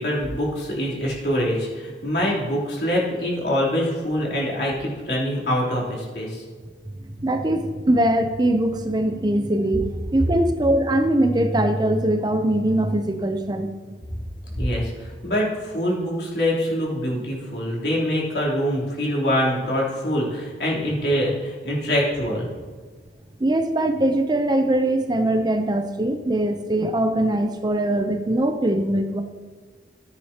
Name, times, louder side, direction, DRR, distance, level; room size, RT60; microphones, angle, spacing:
voice 1, 0.0-6.4 14.6-22.5, equal, 70° left, -5 dB, 3.4 m, -24 dB
voice 2, 7.0-13.7 17.1-17.2 23.4-29.2, right 1 dB, 25° right, 6 dB, 0.6 m, -22 dB
14.0 x 9.6 x 2.9 m, 1.5 s
head